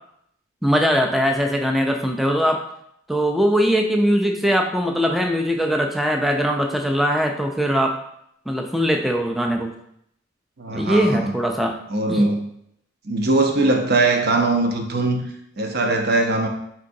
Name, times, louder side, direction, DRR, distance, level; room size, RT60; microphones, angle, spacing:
voice 1, 0.6-2.6 3.1-8.0 8.5-9.7 10.7-11.8 12.1-12.2, equal, ahead, 2 dB, 0.3 m, -21 dB
voice 2, 10.6-11.3 11.9-12.5 13.0-15.2 15.6-16.5, right 2 dB, 55° right, 3 dB, 0.6 m, -20 dB
4.5 x 3.7 x 2.6 m, 0.73 s
head